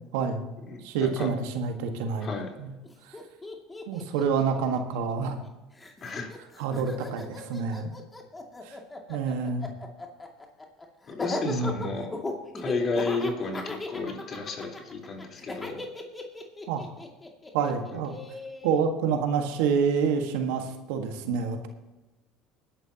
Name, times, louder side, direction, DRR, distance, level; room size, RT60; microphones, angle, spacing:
voice 1, 0.0-0.5 0.8-2.3 2.6-2.7 3.1-3.2 3.9-5.4 6.6-7.9 8.6-8.8 9.1-9.7 11.4-11.9 16.7-16.9 17.5-18.2 18.6-21.7, right 6 dB, 80° right, 5 dB, 1.6 m, -28 dB
voice 2, 0.7-1.3 2.2-2.5 6.0-6.3 11.1-12.1 12.5-15.8 17.9-18.0, left 3 dB, 40° left, 1 dB, 4.0 m, -32 dB
Laughter, 2.8-2.9 3.1-5.5 5.8-18.8, left 2 dB, 15° left, 2.4 m, -37 dB
21.0 x 11.0 x 2.9 m, 1.1 s
supercardioid pair, 90°, 0 cm